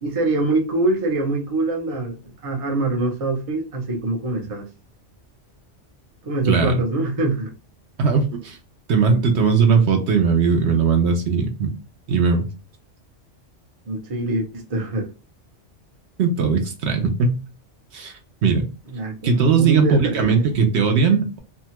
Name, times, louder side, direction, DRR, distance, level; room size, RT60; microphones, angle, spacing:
voice 1, 0.0-4.7 6.2-7.5 13.9-15.1 18.9-20.4, right 2 dB, 35° right, 0.7 m, -24 dB
voice 2, 6.5-6.8 8.0-8.6 8.9-11.7 12.1-12.5 16.2-17.4 17.9-18.1 18.4-18.7 19.2-21.4, right 5 dB, 70° right, 0.9 m, -19 dB
2.8 x 2.2 x 2.8 m
omnidirectional pair, 1.2 m